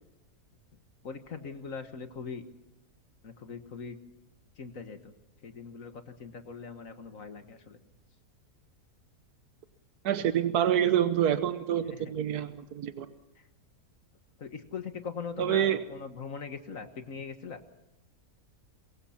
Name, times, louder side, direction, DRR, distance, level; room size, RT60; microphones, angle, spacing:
voice 1, 1.0-2.4 3.2-4.0 4.6-5.1 5.4-7.8 11.9-12.1 13.4-13.5 14.4-17.6, left 5 dB, 60° left, 8 dB, 1.8 m, -41 dB
voice 2, 10.0-13.1 15.4-15.8, right 10 dB, 90° right, 10 dB, 1.5 m, -27 dB
24.0 x 22.5 x 5.8 m, 0.98 s
omnidirectional pair, 1.6 m